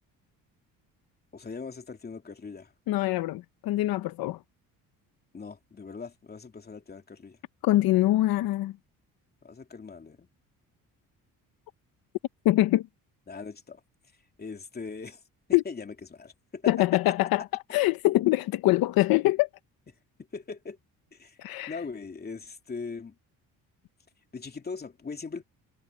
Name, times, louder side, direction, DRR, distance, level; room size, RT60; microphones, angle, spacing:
voice 1, 1.3-2.7 5.3-7.4 9.4-10.3 13.3-13.8 14.4-15.2 15.6-17.1 20.3-20.8 21.1-23.2 24.3-25.4, left 4 dB, 25° left, 2.9 m, -40 dB
voice 2, 2.9-4.4 7.6-8.8 12.4-12.9 15.5-15.6 16.7-19.5 21.4-21.8, left 16 dB, 80° left, 0.9 m, -24 dB
cardioid pair, 105°, 35 cm